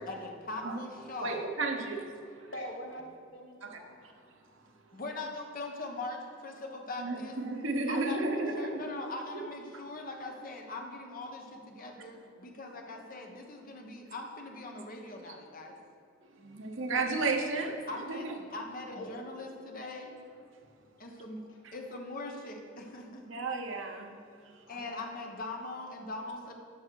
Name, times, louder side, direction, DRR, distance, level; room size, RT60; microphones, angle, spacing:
voice 1, 0.1-1.4 4.9-7.4 7.9-15.8 17.9-20.1 21.0-23.2 24.7-26.5, left 2 dB, 45° left, 2 dB, 1.1 m, -41 dB
voice 2, 1.2-2.1 2.4-2.5 3.6-3.8 7.0-8.8 16.3-17.8 18.1-18.3 23.3-24.2, right 3 dB, 75° right, 3 dB, 1.0 m, -33 dB
voice 3, 2.5-3.9 12.9-13.0 18.3-18.4 18.9-19.1 21.5-21.6 24.7-25.1, equal, 70° left, 0 dB, 1.5 m, -44 dB
12.0 x 5.4 x 4.7 m, 2.4 s
head